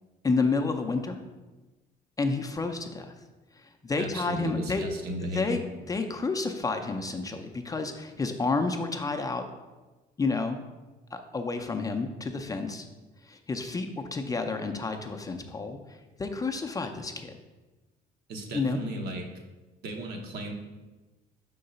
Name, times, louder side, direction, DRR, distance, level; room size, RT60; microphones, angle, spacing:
voice 1, 0.2-1.2 2.2-3.1 3.8-4.8 5.2-5.6 5.9-9.4 10.2-10.6 11.1-12.8 13.3-15.8 16.2-17.4 18.5-18.8, left 3 dB, 20° left, 5 dB, 0.5 m, -30 dB
voice 2, 4.0-5.6 18.3-19.3 19.8-20.5, right 1 dB, 70° right, 2 dB, 1.0 m, -35 dB
4.8 x 3.8 x 5.3 m, 1.2 s
cardioid pair, 110°, 17 cm